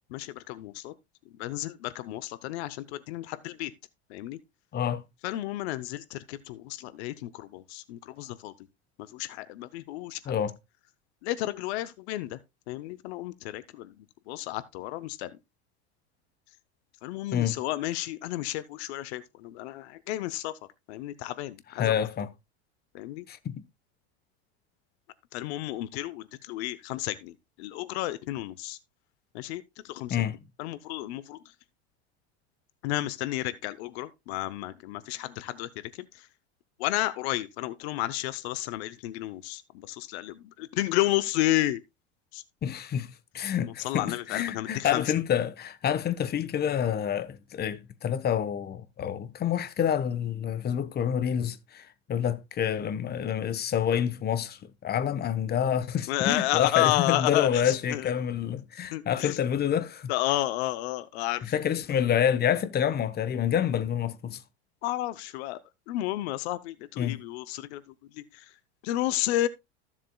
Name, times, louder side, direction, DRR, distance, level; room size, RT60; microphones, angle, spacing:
voice 1, 0.1-0.9 1.4-3.7 4.1-4.4 5.2-8.5 9.0-10.2 11.2-12.4 12.7-13.9 14.3-15.3 17.0-20.6 20.9-22.1 22.9-23.2 25.3-28.8 29.3-30.2 30.6-31.4 32.8-36.3 36.8-41.8 42.3-42.4 43.8-45.0 56.1-58.1 58.9-59.4 60.1-61.5 64.8-65.6 65.9-67.8 68.1-68.4 68.8-69.5, left 16 dB, 70° left, 0.8 m, -32 dB
voice 2, 4.7-5.0 10.2-10.6 17.3-17.6 21.7-22.3 23.3-23.6 30.1-30.4 42.6-60.1 61.4-64.4 67.0-67.2, left 9 dB, 30° left, 1.0 m, -28 dB
14.5 x 7.4 x 2.3 m
hypercardioid pair, 95°, 33 cm